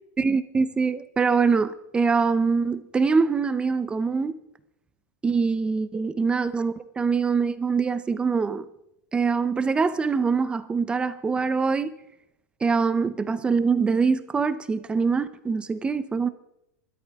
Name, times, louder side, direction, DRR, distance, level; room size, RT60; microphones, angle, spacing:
voice 1, 0.2-4.4 5.2-8.6 9.1-11.9 12.6-16.3, right 5 dB, 10° right, 0.5 m, -24 dB
25.5 x 12.5 x 3.5 m
supercardioid pair, 165°, 9 cm